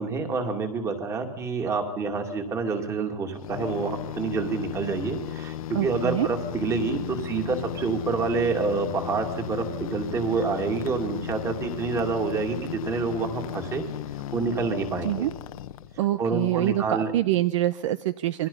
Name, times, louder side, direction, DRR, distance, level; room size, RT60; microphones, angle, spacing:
voice 1, 0.0-13.8 14.3-15.3 16.2-17.1, right 4 dB, 15° right, 5 dB, 2.5 m, -28 dB
sound 1, 3.4-16.2, left 11 dB, 60° left, 1.2 m, -35 dB
voice 2, 5.7-6.3 15.0-15.3 16.0-18.5, right 14 dB, 50° right, 15 dB, 0.8 m, -25 dB
28.0 x 23.0 x 5.6 m, 0.84 s
supercardioid pair, 170°, 21 cm